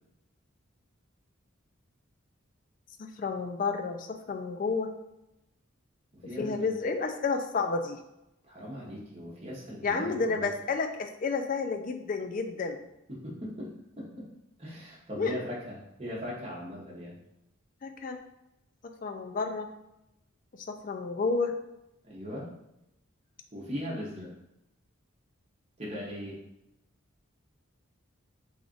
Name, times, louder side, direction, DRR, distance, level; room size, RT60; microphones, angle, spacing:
voice 1, 3.0-4.9 6.4-8.0 9.8-12.8 15.2-15.4 17.8-18.2 18.8-19.7 20.5-21.6, left 4 dB, 40° left, 6 dB, 0.3 m, -31 dB
voice 2, 6.1-6.7 8.4-10.5 13.1-13.7 14.0-14.3 14.6-17.2 22.0-22.5 23.5-24.3 25.8-26.4, equal, 30° right, -5 dB, 0.9 m, -39 dB
3.4 x 2.4 x 3.8 m, 0.89 s
head